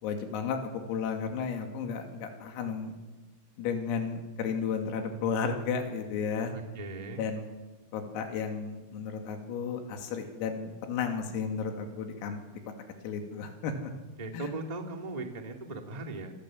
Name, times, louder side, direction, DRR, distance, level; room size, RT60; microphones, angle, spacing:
voice 1, 0.0-2.9 3.6-6.5 7.2-7.5 7.9-12.4 13.0-13.9 14.3-14.5, left 6 dB, 85° left, 4 dB, 5.2 m, -33 dB
voice 2, 6.5-7.2 14.2-16.3, right 3 dB, 25° right, 3 dB, 0.9 m, -38 dB
27.5 x 24.0 x 7.8 m, 1.1 s
omnidirectional pair, 5.9 m